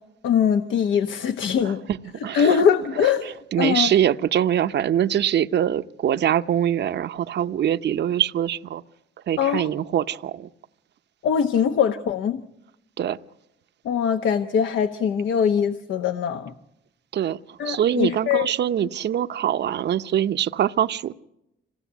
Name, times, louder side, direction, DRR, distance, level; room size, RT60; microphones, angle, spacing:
voice 1, 0.2-1.8 2.3-4.0 9.4-9.7 11.2-12.4 13.8-16.5 17.6-18.5, left 7 dB, 75° left, 1.1 m, -22 dB
voice 2, 1.6-2.6 3.5-8.8 9.3-10.5 13.0-13.2 17.1-21.1, right 10 dB, 60° right, 0.8 m, -23 dB
26.0 x 17.5 x 8.2 m
cardioid pair, 90°, 20 cm